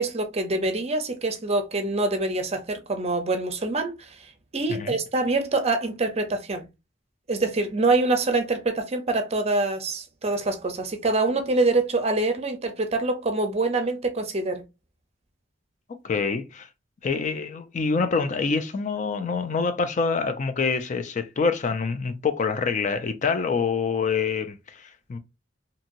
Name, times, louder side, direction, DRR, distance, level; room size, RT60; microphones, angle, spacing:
voice 1, 0.0-4.2 4.5-6.6 7.3-14.6, right 2 dB, 35° right, 0.6 m, -25 dB
voice 2, 16.0-16.7 17.0-25.2, left 5 dB, 40° left, 0.4 m, -26 dB
2.8 x 2.7 x 2.5 m
head